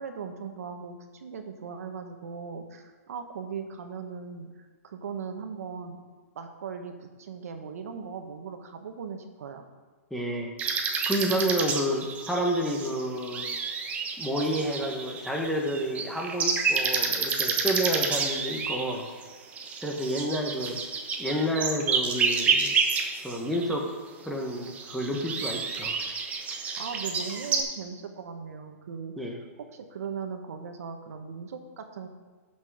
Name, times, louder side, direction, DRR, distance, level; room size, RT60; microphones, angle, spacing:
voice 1, 0.0-6.0 6.3-9.7 26.8-32.1, right 6 dB, 70° right, 6 dB, 1.3 m, -39 dB
voice 2, 10.1-10.5 11.1-13.5 14.2-19.0 19.8-20.8 21.2-22.7 23.2-23.9 24.2-26.0 29.2-29.4, equal, ahead, 0 dB, 1.3 m, -29 dB
sound 1, 10.6-23.8 24.5-27.6, right 5 dB, 15° right, 1.0 m, -29 dB
12.0 x 6.2 x 4.9 m, 1.4 s
hypercardioid pair, 150°, 8 cm